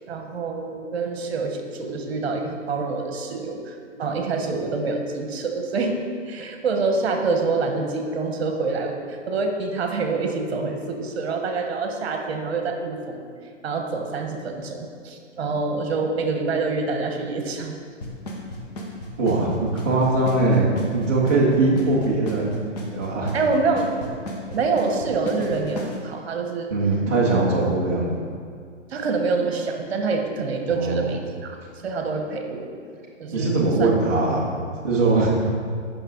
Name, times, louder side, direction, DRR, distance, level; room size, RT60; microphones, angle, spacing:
voice 1, 0.1-6.0 6.3-8.9 9.3-13.2 13.6-17.8 23.3-23.9 24.5-26.7 28.9-31.6 31.8-32.7 33.2-33.9, right 4 dB, 55° right, 3 dB, 1.2 m, -26 dB
Drum kit / Snare drum / Bass drum, 18.0-26.0, equal, 35° left, 1.0 m, -34 dB
voice 2, 19.2-22.6 22.9-23.3 26.7-28.1 30.7-31.1 33.3-34.5 34.8-35.3, right 2 dB, 15° right, -8 dB, 0.5 m, -21 dB
8.7 x 5.8 x 3.8 m, 2.2 s
hypercardioid pair, 160°, 38 cm